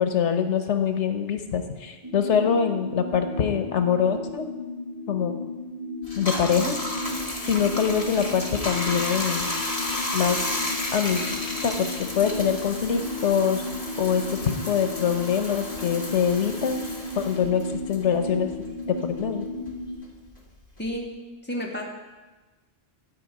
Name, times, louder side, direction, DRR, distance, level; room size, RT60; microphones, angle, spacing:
voice 1, 0.0-4.5 5.1-5.3 6.2-6.8 7.4-9.5 10.1-10.4 10.9-11.3 11.6-13.6 14.0-16.8 17.2-18.5 18.9-19.4, left 7 dB, 85° left, 7 dB, 1.2 m, -24 dB
sound 1, 2.0-19.9, left 2 dB, 30° right, 1.8 m, -35 dB
Bathtub (filling or washing), 6.0-18.9 19.2-21.0, left 1 dB, 30° left, 1.7 m, -33 dB
voice 2, 20.8-21.1 21.4-21.8, equal, 10° left, -2 dB, 2.1 m, -30 dB
13.0 x 5.4 x 8.5 m, 1.2 s
omnidirectional pair, 1.2 m